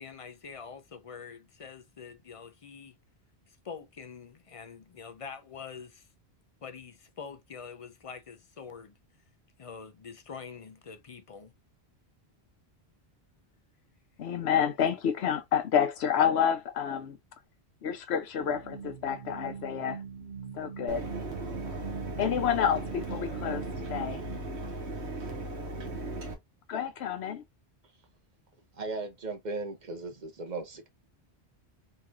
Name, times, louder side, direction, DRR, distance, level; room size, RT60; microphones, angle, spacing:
voice 1, 0.0-2.9 3.5-6.1 6.6-9.0 9.6-11.5, left 6 dB, 45° left, 0.5 m, -45 dB
voice 2, 14.2-17.2 17.8-20.0 20.5-21.1 22.2-24.2 26.7-27.4, left 8 dB, 80° left, 0.9 m, -29 dB
sound 1, 18.4-24.4, right 6 dB, 65° right, 1.1 m, -42 dB
Mechanisms, 20.9-26.3, right 2 dB, 90° right, 1.3 m, -37 dB
voice 3, 28.7-30.9, right 3 dB, 45° right, 0.9 m, -37 dB
3.8 x 2.9 x 2.3 m
omnidirectional pair, 1.1 m